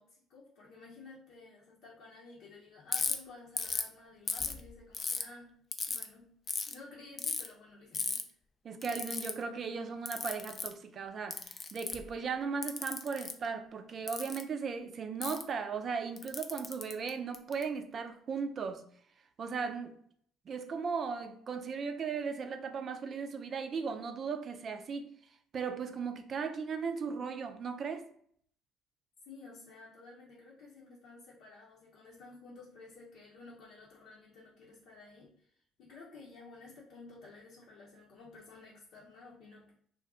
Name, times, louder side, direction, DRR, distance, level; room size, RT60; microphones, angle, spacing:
voice 1, 0.0-5.6 5.9-6.4 6.6-8.3 29.2-39.7, left 3 dB, 65° left, 0.8 m, -53 dB
Ratchet pawl, 2.9-3.1 3.6-3.9 4.3-5.2 5.7-6.0 6.5-6.7 7.2-7.5 7.9-8.2 8.8-9.3 10.1-10.7 11.3-12.1 12.6-13.3 14.1-14.4 15.2-15.4 16.2-17.6, left 5 dB, 40° left, 0.4 m, -35 dB
voice 2, 8.6-18.9 19.4-20.0 20.5-25.1 25.5-28.1, right 5 dB, 50° right, 0.5 m, -37 dB
2.5 x 2.3 x 3.6 m
hypercardioid pair, 55°, 0 cm